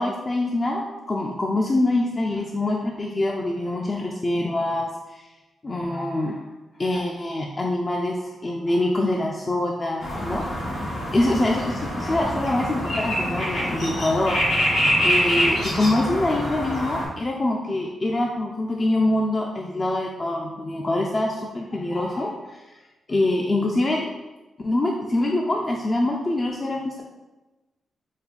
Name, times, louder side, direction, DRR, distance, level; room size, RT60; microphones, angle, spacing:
voice 1, 0.0-5.3 5.6-6.4 6.8-10.4 11.1-14.4 15.0-22.7 23.1-24.1 24.6-27.0, left 2 dB, 30° left, -1 dB, 0.4 m, -25 dB
sound 1, 10.0-17.1, equal, 85° left, 1.5 m, -25 dB
4.0 x 2.2 x 4.1 m, 1.1 s
cardioid pair, 90°, 0 cm